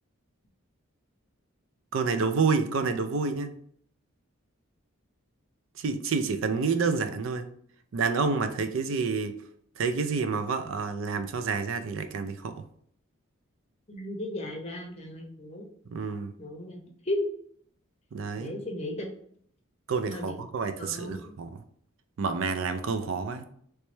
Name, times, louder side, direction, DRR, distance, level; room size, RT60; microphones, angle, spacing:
voice 1, 1.9-3.5 5.8-7.5 7.9-9.3 9.8-12.6 15.9-16.3 18.1-18.5 19.9-21.6 22.2-23.5, right 4 dB, 65° right, 9 dB, 0.4 m, -28 dB
voice 2, 13.9-15.6 16.4-17.2 18.4-19.1 20.1-20.3 20.8-21.2, left 1 dB, 30° left, 1 dB, 0.7 m, -35 dB
3.2 x 3.1 x 3.1 m, 0.64 s
head